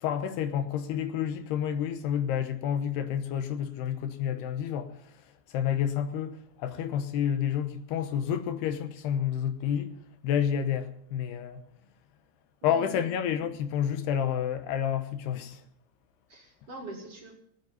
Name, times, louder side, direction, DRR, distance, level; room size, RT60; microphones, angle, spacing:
voice 1, 0.0-5.0 5.5-9.9 10.2-11.6 12.6-15.6, left 9 dB, 75° left, 3.0 m, -29 dB
voice 2, 12.6-13.1 16.3-17.3, right 2 dB, 40° right, 2.6 m, -43 dB
19.0 x 8.1 x 9.2 m
omnidirectional pair, 4.9 m